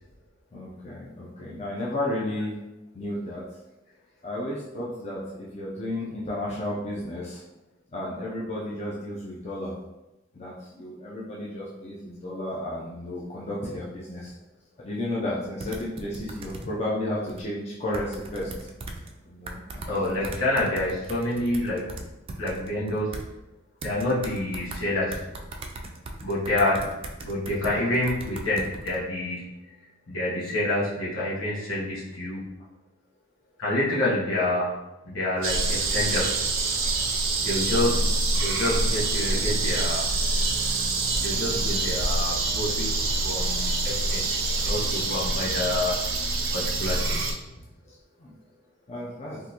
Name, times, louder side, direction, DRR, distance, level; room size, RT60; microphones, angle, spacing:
voice 1, 0.5-2.6 2.9-3.4 4.2-7.4 7.9-9.7 10.3-14.3 14.8-18.5 19.3-20.2 37.7-38.1 47.9-48.3 48.9-49.4, left 1 dB, 35° left, -6 dB, 0.5 m, -33 dB
sound 1, 15.6-16.6 17.3-17.4 17.9-19.1 19.5-23.2 23.8-24.8 25.1-29.0, right 2 dB, 30° right, 0.4 m, -38 dB
voice 2, 19.9-21.8 22.4-23.1 23.8-25.2 26.2-26.9 27.2-29.6 30.1-32.4 33.6-34.8 35.0-36.3 37.4-38.0 38.3-40.1 41.2-43.0 43.2-46.0 46.5-47.2, left 1 dB, 75° left, -7 dB, 1.2 m, -27 dB
sound 2, 35.4-47.3, right 3 dB, 85° right, 0.5 m, -26 dB
3.6 x 2.5 x 2.9 m, 0.98 s
head